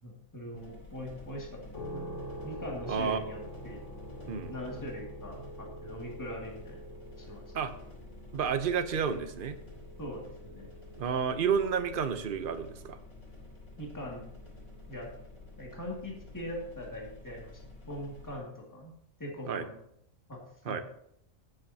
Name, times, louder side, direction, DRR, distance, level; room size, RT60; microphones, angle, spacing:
voice 1, 0.0-1.6 1.9-3.8 4.5-7.4 10.0-10.7 13.8-14.3 14.9-15.1 15.6-18.9 19.2-19.8 20.3-20.4 20.7-20.8, equal, 15° left, -2 dB, 2.2 m, -42 dB
sound 1, 0.5-18.4, left 2 dB, 85° left, 3.9 m, -50 dB
sound 2, 1.7-16.4, right 1 dB, 65° left, 5.3 m, -47 dB
voice 2, 2.9-3.2 4.3-4.6 7.5-7.7 8.3-9.6 11.0-13.0 19.5-19.6 20.6-20.8, right 6 dB, 45° right, 9 dB, 0.9 m, -30 dB
16.0 x 7.8 x 2.8 m, 0.73 s
omnidirectional pair, 1.4 m